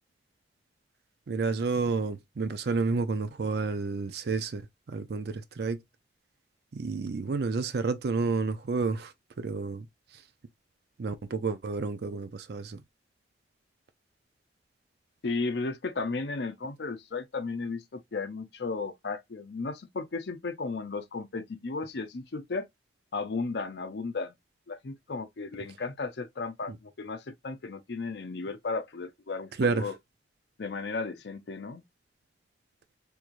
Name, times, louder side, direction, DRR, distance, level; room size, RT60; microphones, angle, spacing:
voice 1, 1.3-5.8 6.7-9.9 10.1-10.2 11.0-12.8 26.7-26.8 29.6-29.9, right 4 dB, 60° right, 0.4 m, -30 dB
voice 2, 15.2-22.7 23.1-24.3 24.7-29.9 30.6-31.8, left 3 dB, 65° left, 0.5 m, -34 dB
3.5 x 3.0 x 2.4 m
head